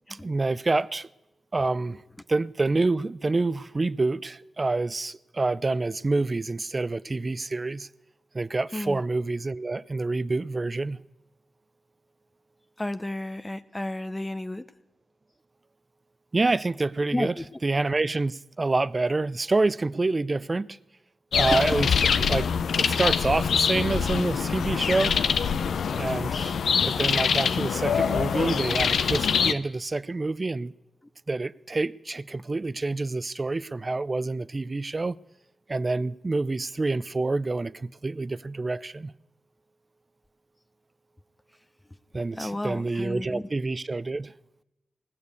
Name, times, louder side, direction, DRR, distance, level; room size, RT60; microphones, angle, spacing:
voice 1, 0.2-1.1 1.5-2.0 2.3-7.9 8.3-11.0 16.3-17.3 17.6-20.8 21.4-21.9 22.2-22.5 22.8-25.2 25.9-26.5 26.9-30.7 31.3-35.2 35.7-39.1 42.1-44.3, right 3 dB, 35° right, 0.4 m, -27 dB
voice 2, 12.8-14.7 17.1-17.5 41.9-42.0 42.4-43.5, left 1 dB, 20° left, 0.6 m, -32 dB
sound 1, 21.3-29.5, left 6 dB, 80° left, 0.5 m, -24 dB
18.5 x 6.7 x 8.2 m
cardioid pair, 50°, 0 cm